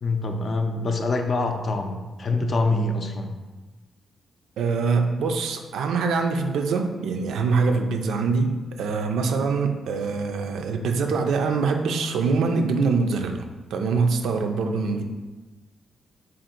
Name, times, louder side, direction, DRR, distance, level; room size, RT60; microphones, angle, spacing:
voice 1, 0.0-3.4, left 2 dB, 45° left, 4 dB, 0.5 m, -25 dB
voice 2, 4.6-15.0, right 4 dB, 85° right, 5 dB, 0.4 m, -24 dB
3.7 x 2.6 x 4.2 m, 1.2 s
cardioid pair, 90°, 0 cm